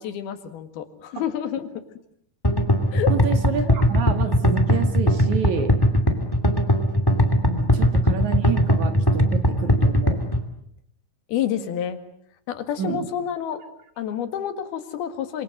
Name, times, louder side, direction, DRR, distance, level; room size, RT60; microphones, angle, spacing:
voice 1, 0.0-1.7 2.9-3.1 11.3-12.0 12.5-13.6 14.0-15.4, left 9 dB, 80° left, 9 dB, 3.8 m, -28 dB
sound 1, 2.4-10.4, equal, 10° left, 1.7 m, -19 dB
voice 2, 3.1-5.7 7.4-10.2 12.8-13.1, right 6 dB, 55° right, 8 dB, 3.0 m, -29 dB
26.5 x 26.5 x 7.8 m, 0.68 s
omnidirectional pair, 4.4 m